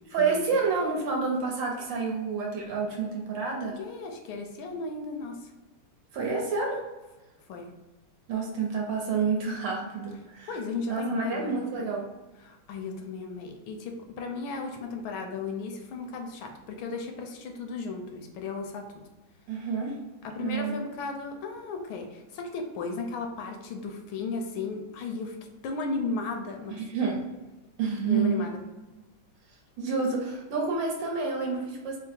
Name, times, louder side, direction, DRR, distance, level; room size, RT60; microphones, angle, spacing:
voice 1, 0.1-3.8 6.1-6.8 8.3-10.5 10.9-12.1 19.5-19.9 20.4-20.7 26.8-27.2 27.8-28.4 29.8-32.0, right 4 dB, 70° right, -1 dB, 1.3 m, -29 dB
voice 2, 3.6-5.5 7.5-7.7 10.5-11.5 12.4-18.8 20.2-26.8 28.0-28.6, left 4 dB, 80° left, 3 dB, 1.3 m, -35 dB
3.7 x 2.0 x 4.1 m, 1.1 s
omnidirectional pair, 2.3 m